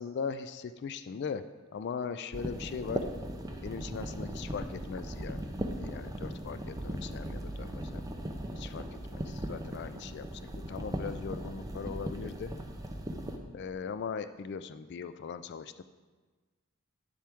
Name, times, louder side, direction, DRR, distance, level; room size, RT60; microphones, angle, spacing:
voice 1, 0.0-1.4 1.7-3.0 3.6-5.4 5.8-8.1 8.5-10.3 10.7-12.5 13.5-15.8, left 6 dB, 50° left, 12 dB, 0.3 m, -39 dB
sound 1, 2.3-13.4, right 1 dB, 15° right, 0.6 m, -38 dB
9.9 x 7.4 x 3.5 m, 1.3 s
head